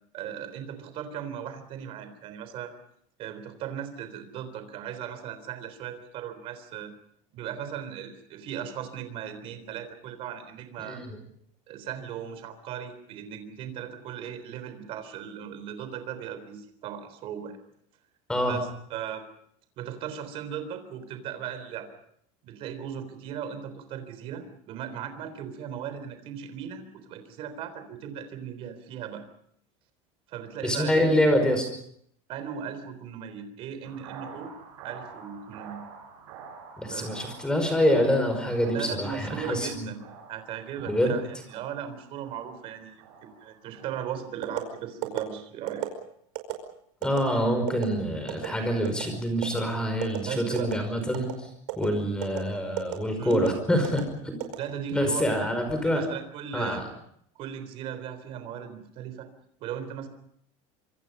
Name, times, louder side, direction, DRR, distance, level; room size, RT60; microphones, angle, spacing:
voice 1, 0.1-2.7 3.2-6.9 7.3-11.0 11.7-17.6 18.4-19.2 19.8-21.9 22.4-29.3 30.3-31.1 32.3-34.5 34.8-35.8 36.8-37.1 38.7-40.0 40.3-45.9 50.2-50.7 53.2-53.5 54.6-55.5 55.8-56.9 57.4-59.3 59.6-60.1, right 9 dB, 35° right, 10 dB, 3.6 m, -37 dB
voice 2, 10.9-11.2 18.3-18.6 30.6-31.7 36.8-39.9 40.9-41.2 47.0-51.3 51.7-54.4 54.9-56.0 56.5-56.9, equal, 5° left, 6 dB, 5.2 m, -26 dB
sound 1, 33.8-44.0, right 5 dB, 85° right, 6.1 m, -47 dB
sound 2, 44.4-44.7 45.0-45.2 45.7-45.9 46.4-46.5 47.0-47.2 47.7-47.9 48.3-48.5 48.9-49.1 49.4-49.6 50.0-50.2 50.6-50.8 51.1-51.3 51.7-51.9 52.2-52.4 52.8-53.0 53.3-53.5 53.8-54.0 54.4-55.1 55.5-55.8, right 18 dB, 70° right, 5.1 m, -31 dB
26.0 x 25.5 x 5.5 m, 0.68 s
cardioid pair, 175°, 16 cm